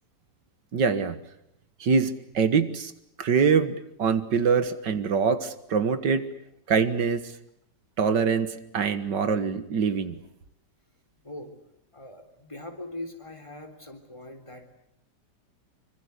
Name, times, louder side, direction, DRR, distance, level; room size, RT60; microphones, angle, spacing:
voice 1, 0.7-1.2 1.8-2.9 3.2-6.2 6.7-7.3 8.0-10.2, right 5 dB, 85° right, 11 dB, 2.2 m, -24 dB
voice 2, 11.9-14.7, left 1 dB, 15° left, 5 dB, 3.7 m, -41 dB
26.0 x 25.0 x 8.3 m, 0.78 s
omnidirectional pair, 1.8 m